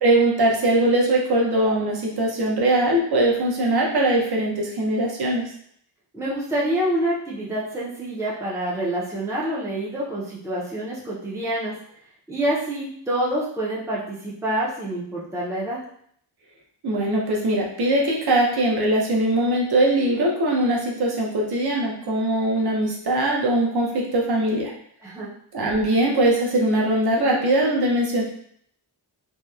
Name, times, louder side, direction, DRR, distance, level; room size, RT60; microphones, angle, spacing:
voice 1, 0.0-5.4 16.8-24.7 25.5-28.2, right 1 dB, 60° right, -1 dB, 0.7 m, -21 dB
voice 2, 6.1-11.7 12.3-15.8 25.0-25.3, right 1 dB, 5° right, -6 dB, 0.4 m, -27 dB
2.8 x 2.0 x 2.3 m, 0.65 s
wide cardioid pair, 160°, 44 cm